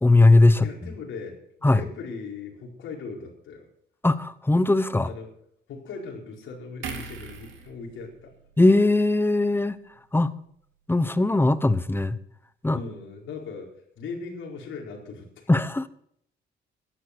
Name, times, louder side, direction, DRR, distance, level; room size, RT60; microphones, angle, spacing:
voice 1, 0.0-0.7 1.6-1.8 4.0-5.1 8.6-9.8 10.1-10.3 10.9-12.2 12.6-12.8 15.5-15.9, left 2 dB, 10° left, 14 dB, 1.0 m, -19 dB
voice 2, 0.6-3.7 5.0-5.3 5.7-8.3 12.7-15.5, left 4 dB, 75° left, 0 dB, 4.6 m, -39 dB
sound 1, 6.8-10.2 10.5-10.7, right 5 dB, 80° right, 2.7 m, -42 dB
14.0 x 11.5 x 6.1 m, 0.68 s
cardioid pair, 90°, 20 cm